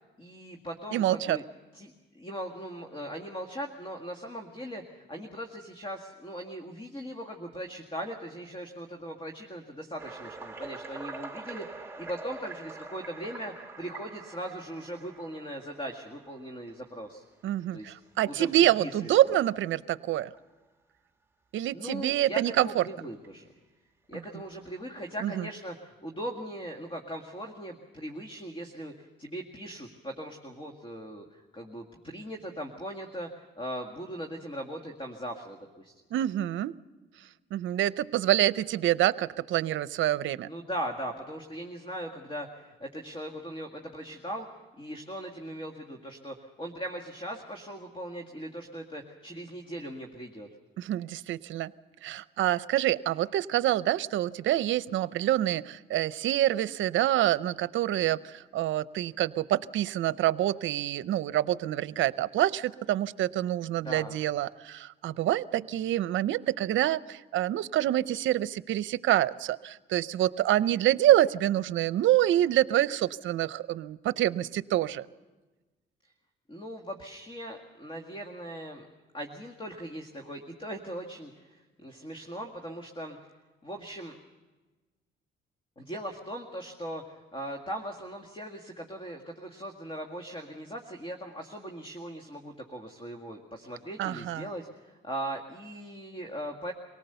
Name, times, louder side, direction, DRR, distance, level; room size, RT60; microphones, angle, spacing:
voice 1, 0.2-1.4 1.7-17.2 17.7-17.9 18.2-19.4 21.7-23.5 24.1-36.0 40.5-44.5 44.8-50.5 63.8-64.2 76.5-78.9 79.1-83.2 83.6-84.2 85.8-96.7, equal, 25° left, 4 dB, 2.0 m, -39 dB
voice 2, 0.9-1.4 17.4-20.3 21.5-22.8 25.2-25.4 36.1-36.7 37.5-40.5 50.8-51.7 52.0-75.1 94.0-94.5, right 13 dB, 75° right, 17 dB, 0.6 m, -26 dB
sound 1, 10.0-16.9 17.5-17.7 18.2-18.3 18.9-19.0 20.3-20.4 23.2-23.3 24.1-24.8, right 3 dB, 10° right, 1.5 m, -44 dB
24.0 x 18.5 x 6.9 m, 1.2 s
cardioid pair, 90°, 20 cm